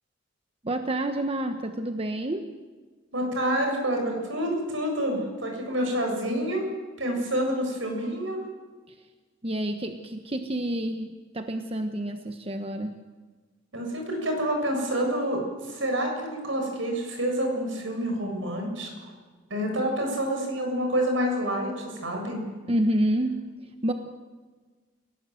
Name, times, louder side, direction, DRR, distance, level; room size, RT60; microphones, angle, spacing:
voice 1, 0.6-2.5 8.9-9.0 9.4-13.0 22.7-23.5 23.8-23.9, right 1 dB, 30° right, 6 dB, 1.2 m, -28 dB
voice 2, 3.1-6.7 7.0-8.4 13.7-15.4 15.7-18.9 19.5-21.7 22.0-22.4, equal, 75° right, 3 dB, 7.4 m, -28 dB
30.0 x 17.5 x 7.9 m, 1.4 s
head